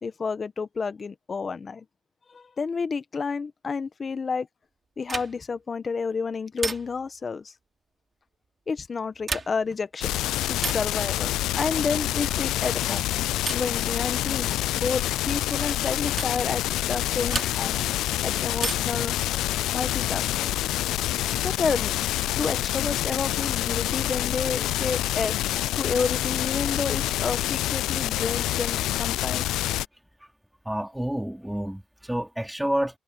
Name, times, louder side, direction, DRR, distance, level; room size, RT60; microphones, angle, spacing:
voice 1, 0.0-1.8 2.3-4.5 5.0-7.5 8.7-10.2 10.5-13.1 13.5-17.8 18.2-19.2 19.7-20.5 21.4-21.9 22.4-25.4 25.7-29.4, left 5 dB, 35° left, 1.5 m, -30 dB
sound 1, 5.0-5.6 6.6-7.2 9.1-9.8 10.6-11.0 12.2-12.6 13.5-13.8 15.1-15.3 16.2-16.4 17.3-17.9 18.6-19.1 20.5-21.2, right 4 dB, 35° right, 6.1 m, -34 dB
sound 2, 10.0-29.9, left 14 dB, 90° left, 0.4 m, -27 dB
voice 2, 30.6-33.0, equal, 5° right, 3.2 m, -29 dB
cardioid pair, 90°, 0 cm